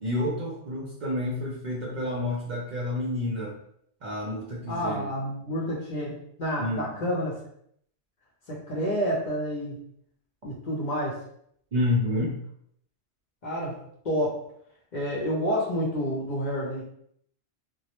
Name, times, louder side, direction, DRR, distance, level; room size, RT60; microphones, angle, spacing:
voice 1, 0.0-3.6 4.0-5.1 6.6-7.0 11.7-12.4, left 1 dB, 55° right, -4 dB, 0.5 m, -29 dB
voice 2, 4.7-7.4 8.5-9.8 10.4-11.2 13.4-13.8 14.0-14.4 14.9-16.9, equal, 50° left, -5 dB, 0.7 m, -29 dB
2.2 x 2.1 x 2.8 m, 0.67 s
omnidirectional pair, 1.1 m